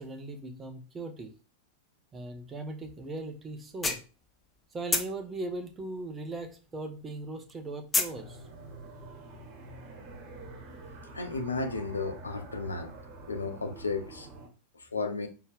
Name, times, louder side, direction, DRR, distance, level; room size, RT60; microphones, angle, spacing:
voice 1, 0.0-1.3 2.1-4.0 4.7-8.4, right 2 dB, 20° right, 0.8 m, -39 dB
sound 1, 3.0-3.1 3.5-4.6 4.9-6.8 7.0-8.2, left 3 dB, 10° left, 0.7 m, -30 dB
sound 2, 8.1-14.5, right 2 dB, 40° right, 1.4 m, -47 dB
voice 2, 11.1-12.9 13.3-14.3 14.9-15.3, left 3 dB, 75° left, 0.7 m, -33 dB
4.4 x 3.5 x 3.5 m
figure-of-eight pair, 90°, 0 cm